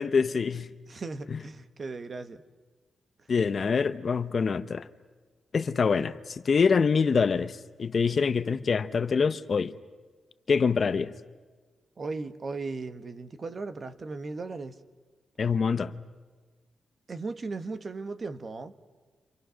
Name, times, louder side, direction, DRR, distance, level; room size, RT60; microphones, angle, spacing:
voice 1, 0.0-0.7 3.3-4.9 5.5-9.7 10.5-11.1 15.4-16.0, left 5 dB, 50° left, 0.8 m, -25 dB
voice 2, 0.9-2.4 12.0-14.8 17.1-18.7, right 3 dB, 40° right, 1.2 m, -37 dB
30.0 x 26.5 x 6.4 m
cardioid pair, 100°, 0 cm